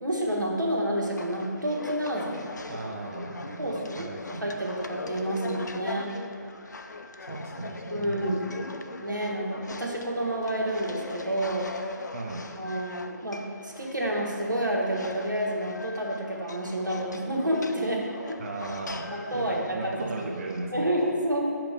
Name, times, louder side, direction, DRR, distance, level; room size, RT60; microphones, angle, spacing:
voice 1, 0.0-2.5 3.6-4.0 4.4-6.1 7.9-8.5 9.0-11.7 12.5-18.4 19.1-20.1 20.7-21.5, right 1 dB, 85° right, -1 dB, 1.1 m, -29 dB
sound 1, 1.0-20.7, left 3 dB, 70° left, 0.4 m, -41 dB
voice 2, 2.7-4.5 7.2-8.4 12.1-12.5 18.4-20.9, right 2 dB, 45° right, 0 dB, 0.4 m, -37 dB
6.3 x 2.9 x 5.2 m, 2.4 s
figure-of-eight pair, 145°, 10 cm